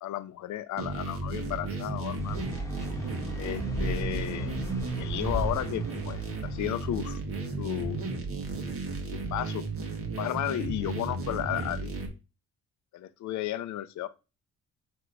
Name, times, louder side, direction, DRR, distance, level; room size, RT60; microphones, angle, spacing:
voice 1, 0.0-2.5 3.4-4.5 5.0-7.2 7.6-8.0 9.3-9.6 10.2-12.0 12.9-14.1, left 13 dB, 70° left, 0.6 m, -33 dB
sound 1, 0.8-12.1, right 3 dB, 45° right, 1.6 m, -34 dB
sound 2, 2.0-6.9, left 1 dB, 10° left, 1.3 m, -37 dB
7.9 x 3.0 x 4.7 m
cardioid pair, 90°, 30 cm